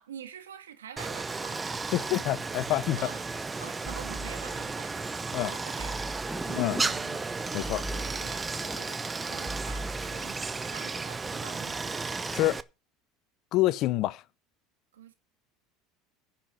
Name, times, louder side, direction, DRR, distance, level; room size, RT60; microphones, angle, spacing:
voice 1, 0.0-1.6 3.0-5.1 5.4-6.0 6.4-7.2 7.7-9.0 9.3-11.9 14.9-15.1, right 9 dB, 90° right, 1.6 m, -46 dB
Stream, 1.0-12.6, right 4 dB, 20° right, 0.7 m, -34 dB
voice 2, 1.9-3.0 5.3-5.5 6.6-6.8 7.5-7.8 12.3-12.6 13.5-14.2, left 16 dB, 55° left, 0.8 m, -27 dB
Thunder, 3.0-8.8, right 1 dB, 5° right, 1.6 m, -44 dB
sound 1, 3.9-4.9 5.8-6.7 7.6-8.7 9.5-10.5, equal, 20° left, 1.1 m, -40 dB
10.0 x 5.9 x 8.6 m
hypercardioid pair, 85°, 0 cm